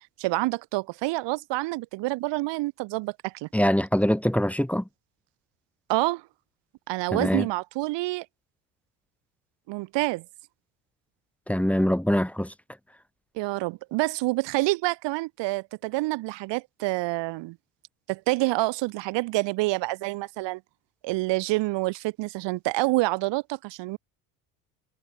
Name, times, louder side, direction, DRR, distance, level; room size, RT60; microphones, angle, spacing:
voice 1, 0.2-3.5 5.9-6.2 6.9-8.2 9.7-10.2 13.3-17.6 18.1-20.6 21.0-24.0, right 21 dB, 70° right, 3.3 m, -27 dB
voice 2, 3.5-4.9 7.1-7.5 11.5-12.5, equal, 5° left, 3.8 m, -23 dB
hypercardioid pair, 75°, 44 cm